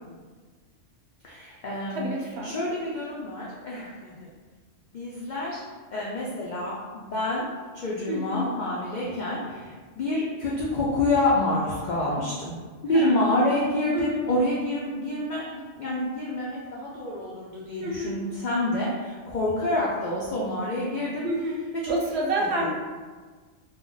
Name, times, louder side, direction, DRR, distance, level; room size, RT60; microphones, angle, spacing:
voice 1, 1.2-2.1 2.4-4.3 4.9-5.6 5.9-7.5 7.7-12.5 12.8-21.3 21.8-21.9 22.6-22.7, left 1 dB, 80° left, -5 dB, 0.4 m, -27 dB
voice 2, 1.9-2.5 8.1-8.4 12.9-13.2 13.9-14.2 17.8-18.1 21.2-21.6 21.9-22.7, right 1 dB, 65° right, -2 dB, 0.7 m, -29 dB
2.3 x 2.0 x 3.7 m, 1.4 s
omnidirectional pair, 1.3 m